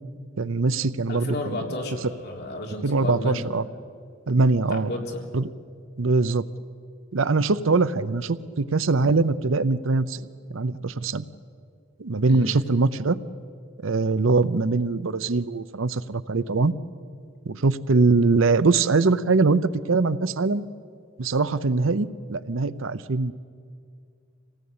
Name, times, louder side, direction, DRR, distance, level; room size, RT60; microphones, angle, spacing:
voice 1, 0.4-1.6 2.8-3.6 4.3-4.9 5.3-5.4 6.0-6.4 7.1-11.2 12.0-13.2 13.8-16.7 17.4-19.6 19.9-20.6 21.2-23.3, right 3 dB, 70° right, 15 dB, 0.7 m, -22 dB
voice 2, 1.1-3.5 4.7-5.2 12.2-12.6, left 2 dB, 55° left, 1 dB, 3.7 m, -32 dB
26.5 x 18.0 x 8.7 m, 2.3 s
head